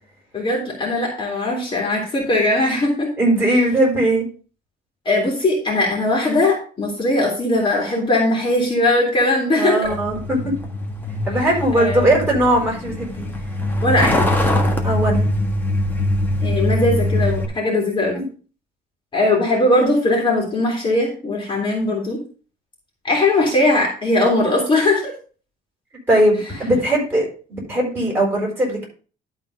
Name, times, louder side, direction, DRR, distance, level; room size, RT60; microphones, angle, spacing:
voice 1, 0.3-3.1 5.0-9.8 11.7-12.2 13.8-14.3 16.4-18.2 19.1-22.2 23.0-25.1, left 2 dB, 30° left, -1 dB, 2.6 m, -19 dB
voice 2, 3.2-4.3 9.6-10.6 11.3-13.3 14.8-15.2 18.1-18.2 26.1-28.8, right 1 dB, 10° right, -3 dB, 4.9 m, -19 dB
Truck, 9.8-17.5, left 1 dB, 10° left, 1.5 m, -22 dB
12.0 x 4.0 x 5.3 m, 0.39 s
cardioid pair, 150°, 18 cm